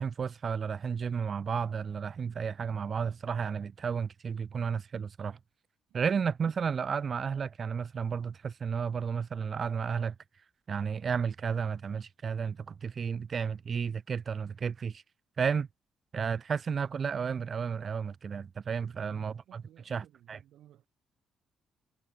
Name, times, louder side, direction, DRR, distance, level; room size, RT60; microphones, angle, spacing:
voice 1, 0.0-5.4 5.9-10.1 10.7-15.0 15.4-15.7 16.1-20.4, right 6 dB, 45° right, 1.9 m, -32 dB
voice 2, 18.8-20.9, right 12 dB, 80° right, 7.1 m, -59 dB
cardioid pair, 105°, 0 cm